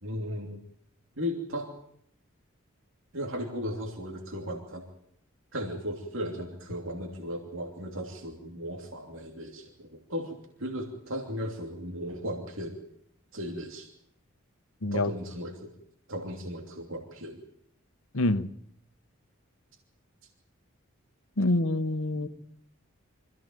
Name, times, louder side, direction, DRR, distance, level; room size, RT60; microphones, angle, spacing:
voice 1, 0.0-0.6 1.2-1.7 3.1-4.9 5.5-12.8 13.3-13.9 14.9-15.7 16.1-17.4 22.1-22.3, equal, 70° right, 2.9 m, -36 dB
voice 2, 18.1-18.5 21.4-22.3, left 2 dB, 75° left, 1.1 m, -26 dB
25.0 x 15.5 x 9.1 m
head